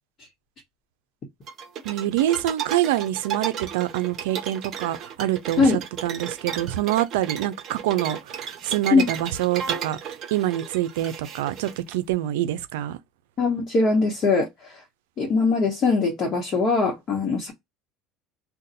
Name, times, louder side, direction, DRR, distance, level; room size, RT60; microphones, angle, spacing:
sound 1, 1.5-11.9, right 8 dB, 45° right, 0.9 m, -34 dB
voice 1, 1.8-5.7 6.0-13.0, right 13 dB, 90° right, 0.4 m, -26 dB
voice 2, 13.4-14.8 15.2-17.5, left 4 dB, 40° left, 1.0 m, -21 dB
2.6 x 2.2 x 4.0 m
supercardioid pair, 115°, 0 cm